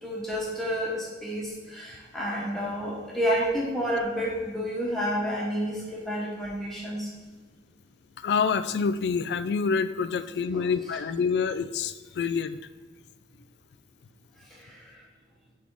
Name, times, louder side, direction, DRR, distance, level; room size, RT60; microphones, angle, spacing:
voice 1, 0.0-7.1 10.5-10.6, equal, ahead, -5 dB, 1.2 m, -30 dB
voice 2, 8.2-12.6, left 5 dB, 70° left, 12 dB, 0.3 m, -27 dB
6.1 x 3.5 x 4.7 m, 1.3 s
head